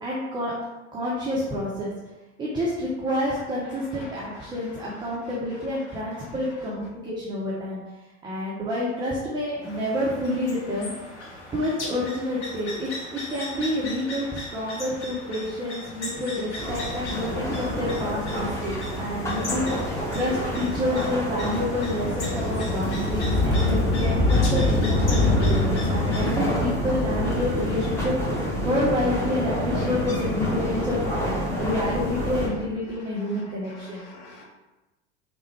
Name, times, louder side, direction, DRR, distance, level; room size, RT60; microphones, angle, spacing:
voice 1, 0.0-0.5 0.9-1.9 2.4-7.8 8.2-10.9 11.5-12.9 13.3-31.0 31.6-34.0, left 1 dB, 15° right, -6 dB, 0.5 m, -28 dB
voice 2, 3.9-4.5 31.5-31.7 33.7-34.4, left 2 dB, 45° left, -1 dB, 0.8 m, -46 dB
sound 1, 9.6-26.5, left 2 dB, 75° left, 0.7 m, -38 dB
sound 2, 16.6-32.5, left 1 dB, 10° left, 0.8 m, -26 dB
3.3 x 2.1 x 3.1 m, 1.1 s
figure-of-eight pair, 75°, 34 cm